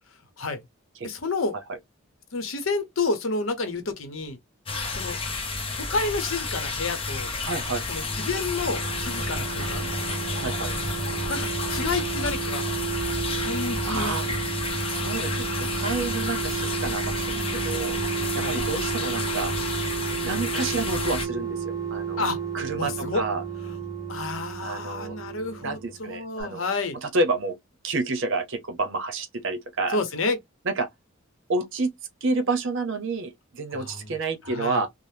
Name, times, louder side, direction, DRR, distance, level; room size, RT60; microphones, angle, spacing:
voice 1, 1.0-1.5 2.3-4.4 5.0-5.2 5.8-7.3 7.9-9.9 11.3-12.7 13.4-14.4 18.4-18.6 22.2-22.4 22.8-23.2 23.6-23.8 24.1-27.0 29.9-30.4 33.7-34.1 34.5-34.8, left 3 dB, 70° left, 0.8 m, -30 dB
sound 1, 4.7-21.3, left 3 dB, 25° left, 0.7 m, -30 dB
voice 2, 7.4-7.8 10.4-10.7 13.8-14.3 14.9-18.0 18.3-19.5 20.2-22.2 22.5-23.4 24.6-25.2 25.6-26.7 27.0-27.6 27.8-30.0 30.6-30.9 31.5-31.9 32.2-34.9, right 3 dB, 65° right, 0.7 m, -29 dB
sound 2, 7.8-26.1 26.4-26.5, right 7 dB, 20° right, 0.7 m, -32 dB
3.3 x 2.0 x 2.7 m
head